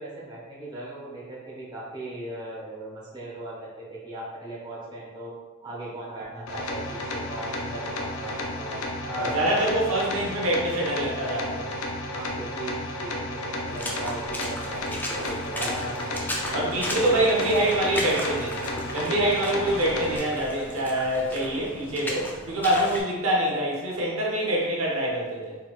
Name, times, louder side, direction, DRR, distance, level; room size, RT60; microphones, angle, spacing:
voice 1, 0.0-5.3 5.6-8.9 9.1-9.4 12.1-15.9 16.7-16.8 17.9-18.1, right 2 dB, 20° right, -7 dB, 0.9 m, -38 dB
sound 1, 6.5-20.2, left 1 dB, 75° left, 0.6 m, -33 dB
voice 2, 9.0-11.7 15.6-16.2 16.5-18.6 18.9-25.6, right 1 dB, 65° right, -3 dB, 0.9 m, -25 dB
Water / Splash splatter, 13.7-23.0, left 1 dB, 10° left, 0.4 m, -36 dB
4.2 x 4.0 x 2.4 m, 1.3 s
head